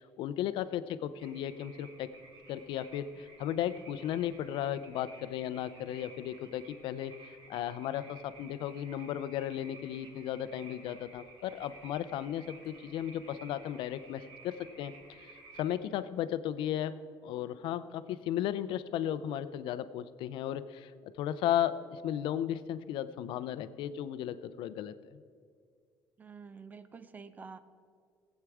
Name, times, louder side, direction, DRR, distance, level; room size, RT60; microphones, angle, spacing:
voice 1, 0.0-2.1 2.5-14.9 15.2-20.9 21.2-24.9, left 11 dB, 75° left, 14 dB, 0.6 m, -35 dB
sound 1, 1.2-15.7, right 3 dB, 70° right, 3.1 m, -55 dB
voice 2, 26.2-27.6, right 5 dB, 20° right, 12 dB, 0.5 m, -48 dB
18.5 x 8.3 x 4.8 m, 2.2 s
cardioid pair, 165°, 8 cm